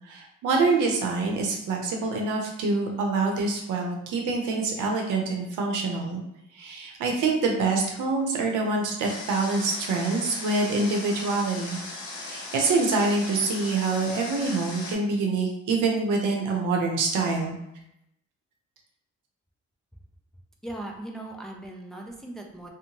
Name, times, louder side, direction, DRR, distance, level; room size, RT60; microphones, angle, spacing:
voice 1, 0.1-6.2 6.5-11.8 12.2-17.5, right 3 dB, 85° right, 1 dB, 0.7 m, -26 dB
Water, 9.0-14.9, left 2 dB, 55° left, 0.9 m, -38 dB
voice 2, 20.6-22.7, right 1 dB, ahead, 1 dB, 0.4 m, -38 dB
2.8 x 2.1 x 2.8 m, 0.81 s
cardioid pair, 90°, 30 cm